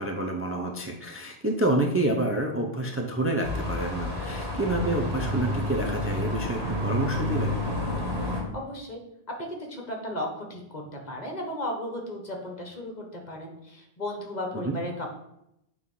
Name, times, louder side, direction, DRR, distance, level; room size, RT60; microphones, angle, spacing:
voice 1, 0.0-7.6 14.5-14.8, right 2 dB, 15° right, 2 dB, 0.6 m, -28 dB
sound 1, 3.4-8.4, left 1 dB, 85° right, 1.9 m, -30 dB
voice 2, 8.5-9.0 9.4-15.1, left 1 dB, 45° left, 2 dB, 1.4 m, -35 dB
8.2 x 3.2 x 5.5 m, 0.83 s
omnidirectional pair, 1.0 m